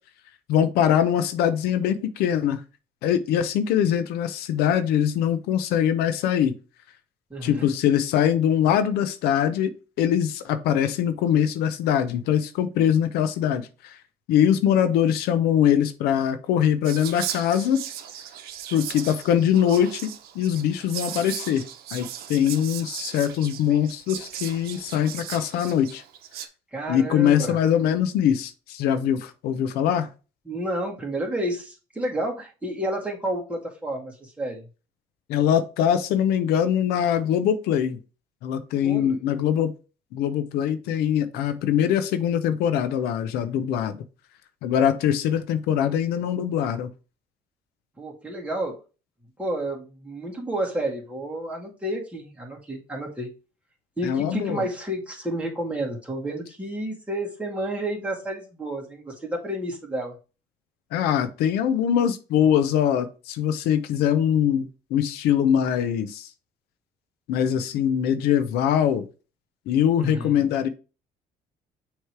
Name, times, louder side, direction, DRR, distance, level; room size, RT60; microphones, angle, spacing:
voice 1, 0.5-2.6 3.0-6.5 7.4-9.7 10.0-14.0 14.3-17.8 18.7-21.6 21.9-26.0 26.9-30.1 35.3-38.0 38.4-39.7 40.1-44.0 44.6-46.9 54.0-54.6 60.9-66.3 67.3-69.1 69.7-70.7, left 9 dB, 85° left, 0.7 m, -22 dB
voice 2, 7.3-7.7 26.7-27.6 30.5-34.6 38.8-39.2 48.0-48.8 49.4-53.3 54.0-60.1 70.0-70.4, right 1 dB, 10° right, 2.1 m, -30 dB
Whispering, 16.8-26.5, right 10 dB, 75° right, 0.8 m, -37 dB
6.5 x 3.2 x 4.6 m
cardioid pair, 110°, 16 cm